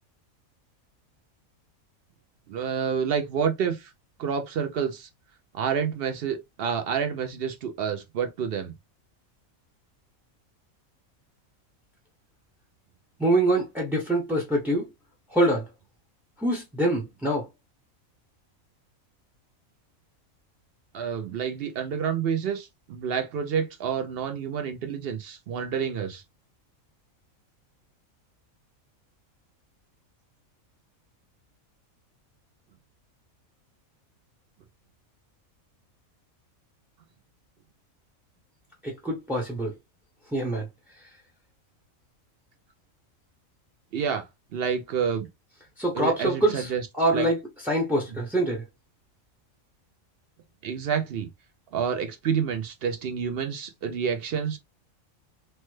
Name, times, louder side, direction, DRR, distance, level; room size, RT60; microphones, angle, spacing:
voice 1, 2.5-3.9 4.2-5.1 5.5-8.7 20.9-26.2 43.9-44.3 44.5-45.3 45.9-46.8 47.1-47.3 50.6-51.3 51.7-54.6, right 7 dB, 65° right, 0.6 m, -28 dB
voice 2, 13.2-14.9 15.3-15.7 16.4-17.5 38.8-39.7 40.3-40.7 45.8-47.4 47.6-48.6, right 1 dB, ahead, 0.4 m, -25 dB
3.2 x 2.1 x 3.1 m
omnidirectional pair, 1.4 m